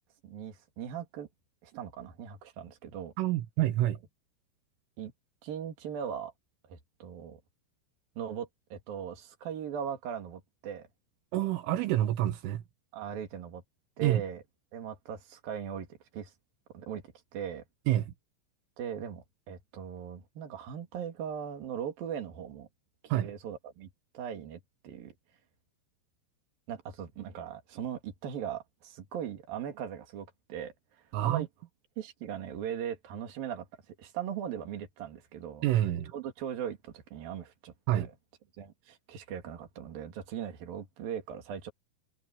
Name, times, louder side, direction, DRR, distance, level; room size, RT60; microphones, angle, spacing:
voice 1, 0.2-1.3 1.6-3.1 5.0-5.1 5.4-6.3 6.7-7.4 8.2-10.9 12.9-13.6 14.0-14.4 14.7-15.9 16.1-16.3 16.7-17.0 17.3-17.6 18.8-22.7 23.0-23.9 24.1-25.1 26.7-30.7 31.2-31.5 32.0-35.6 36.1-38.1 38.6-41.7, right 8 dB, 50° right, 4.0 m, -39 dB
voice 2, 3.2-4.0 11.3-12.6 14.0-14.2 17.9-18.1 23.1-23.3 31.1-31.5 35.6-36.1 37.9-38.1, right 13 dB, 85° right, 3.8 m, -27 dB
omnidirectional pair, 5.7 m